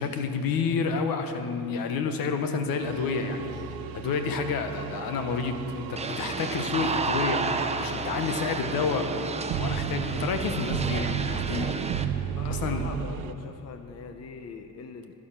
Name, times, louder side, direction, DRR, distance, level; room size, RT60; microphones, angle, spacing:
voice 1, 0.0-3.5 3.9-7.4 7.8-9.1 9.6-11.9 12.5-12.9, left 5 dB, 80° left, 7 dB, 1.1 m, -29 dB
sound 1, 2.8-13.3, right 8 dB, 80° right, 0.7 m, -34 dB
sound 2, 6.0-12.0, right 4 dB, 20° right, 0.6 m, -31 dB
voice 2, 12.4-15.1, left 5 dB, 45° left, 7 dB, 0.7 m, -42 dB
11.5 x 11.5 x 5.8 m, 2.8 s
cardioid pair, 110°, 35 cm